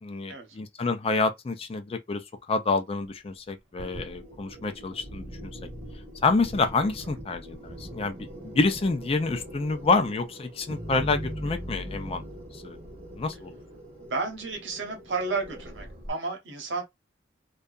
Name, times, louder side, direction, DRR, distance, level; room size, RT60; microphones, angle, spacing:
voice 1, 0.0-5.5 6.2-12.2 12.5-12.8 13.2-13.5, left 3 dB, 30° left, 0.4 m, -28 dB
sound 1, 3.8-16.1, equal, 35° right, 0.9 m, -41 dB
voice 2, 14.0-16.8, right 3 dB, 70° right, 0.9 m, -32 dB
2.7 x 2.3 x 2.3 m
head